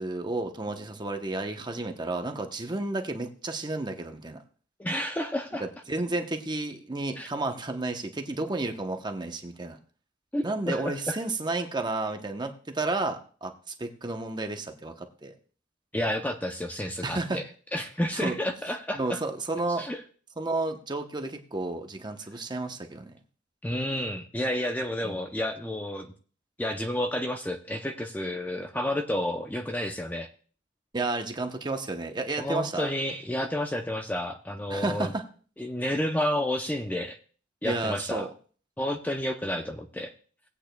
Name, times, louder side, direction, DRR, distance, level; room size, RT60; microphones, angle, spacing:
voice 1, 0.0-4.4 5.6-9.8 10.4-15.3 17.0-17.4 18.1-18.4 18.9-19.9 20.4-23.1 25.0-25.2 30.9-32.9 34.7-35.3 37.6-38.3, right 2 dB, 25° right, 5 dB, 0.8 m, -32 dB
voice 2, 4.8-5.7 7.2-7.3 10.3-11.2 15.9-17.4 17.7-19.2 19.8-20.0 23.6-26.1 26.6-30.3 32.4-35.1 35.6-37.2 37.6-38.3 38.8-40.1, left 1 dB, 10° left, 4 dB, 0.6 m, -30 dB
19.0 x 8.4 x 2.2 m, 0.42 s
head